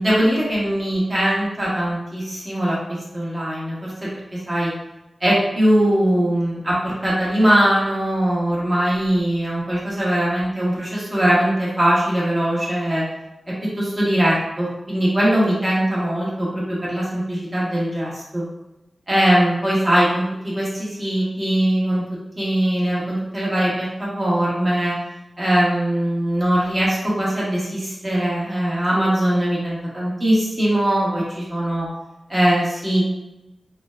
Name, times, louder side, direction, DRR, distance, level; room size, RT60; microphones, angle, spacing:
voice 1, 0.0-2.8 3.1-4.7 5.2-13.0 13.8-18.4 19.1-22.0 22.4-25.0 25.4-31.9 32.3-33.1, right 1 dB, 30° right, -7 dB, 1.5 m, -21 dB
3.7 x 2.2 x 2.4 m, 0.94 s
wide cardioid pair, 60°, 0 cm